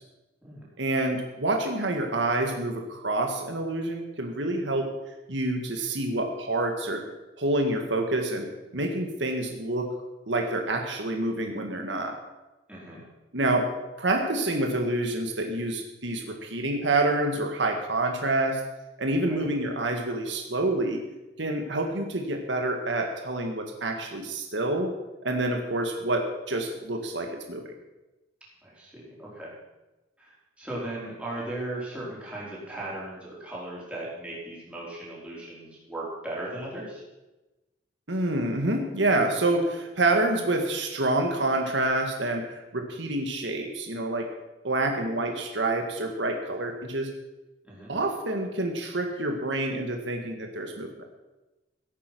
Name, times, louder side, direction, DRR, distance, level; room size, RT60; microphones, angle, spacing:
voice 1, 0.8-4.9 5.3-7.0 7.4-8.5 8.7-9.9 10.3-12.2 13.3-13.7 14.0-18.6 19.0-21.0 21.4-24.9 25.2-27.7 38.1-44.3 44.6-47.1 47.9-50.9, right 2 dB, 75° right, 3 dB, 1.8 m, -27 dB
voice 2, 12.7-13.0 19.3-19.5 28.6-29.5 30.2-37.0 47.6-47.9, right 1 dB, 5° right, -6 dB, 4.7 m, -37 dB
16.5 x 9.0 x 6.2 m, 1.1 s
head